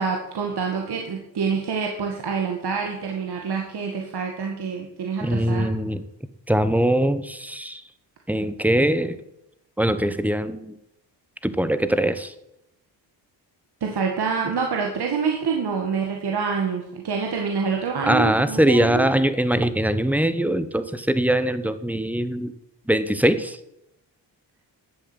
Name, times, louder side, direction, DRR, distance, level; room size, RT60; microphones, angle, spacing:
voice 1, 0.0-5.7 13.8-19.1, right 5 dB, 60° right, 1 dB, 2.2 m, -26 dB
voice 2, 5.2-6.0 6.5-7.8 8.3-9.2 9.8-10.7 11.4-12.3 18.0-22.5 22.9-23.6, right 1 dB, 5° right, 12 dB, 1.2 m, -22 dB
12.0 x 8.0 x 8.1 m, 0.84 s
cardioid pair, 75°, 43 cm